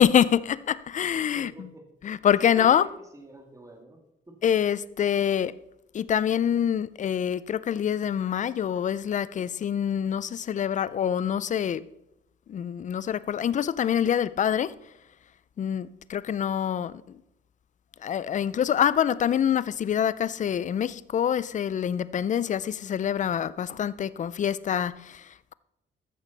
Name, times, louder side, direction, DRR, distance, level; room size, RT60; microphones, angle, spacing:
voice 1, 0.0-1.7 2.0-2.9 4.4-5.5 5.9-11.8 12.5-14.7 15.6-17.0 18.0-25.5, left 9 dB, 40° left, 0.4 m, -25 dB
voice 2, 1.4-1.9 2.4-4.5, right 1 dB, 15° right, 2.0 m, -46 dB
13.5 x 7.0 x 4.0 m
cardioid pair, 90°, 20 cm